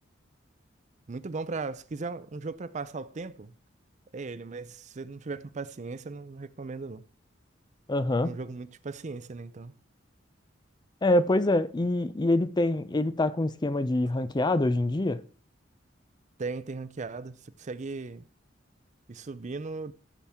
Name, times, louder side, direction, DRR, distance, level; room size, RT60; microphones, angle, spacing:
voice 1, 1.1-3.5 4.1-7.0 8.2-9.7 16.4-18.2 19.1-19.9, right 3 dB, 40° right, 0.5 m, -37 dB
voice 2, 7.9-8.3 11.0-15.2, left 1 dB, 20° left, 0.5 m, -25 dB
14.5 x 7.2 x 3.6 m
head